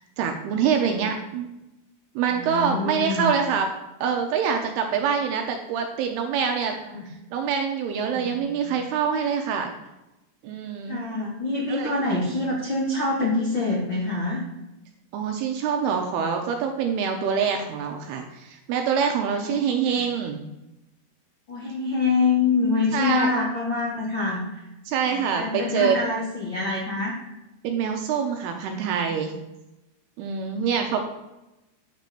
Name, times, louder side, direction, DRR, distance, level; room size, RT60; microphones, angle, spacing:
voice 1, 0.2-1.5 2.2-3.7 4.0-6.8 7.3-9.7 10.4-11.0 11.7-11.9 15.1-20.4 22.9-23.4 24.9-26.0 27.6-29.3 30.2-31.0, right 7 dB, 80° right, 4 dB, 2.4 m, -25 dB
voice 2, 2.3-3.3 6.9-7.1 8.1-8.8 10.9-14.4 19.3-19.6 19.9-20.0 21.5-24.6 25.1-27.2, left 3 dB, 75° left, -5 dB, 1.0 m, -26 dB
9.4 x 4.1 x 6.8 m, 0.96 s
omnidirectional pair, 5.2 m